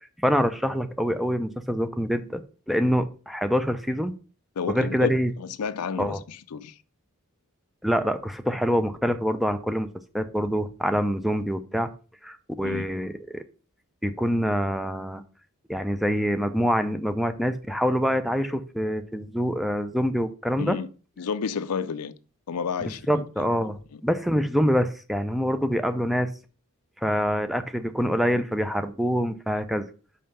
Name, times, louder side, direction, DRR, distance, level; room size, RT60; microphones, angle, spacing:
voice 1, 0.2-2.4 2.7-4.1 4.7-5.3 6.0-6.2 7.8-9.9 10.1-11.9 12.2-13.4 14.0-15.2 15.7-20.8 23.1-26.3 27.0-29.9, equal, ahead, 0.5 m, -25 dB
voice 2, 4.6-6.8 12.6-12.8 20.6-20.9 21.2-22.1 22.5-24.0, left 6 dB, 90° left, 0.5 m, -31 dB
5.6 x 5.5 x 5.5 m
head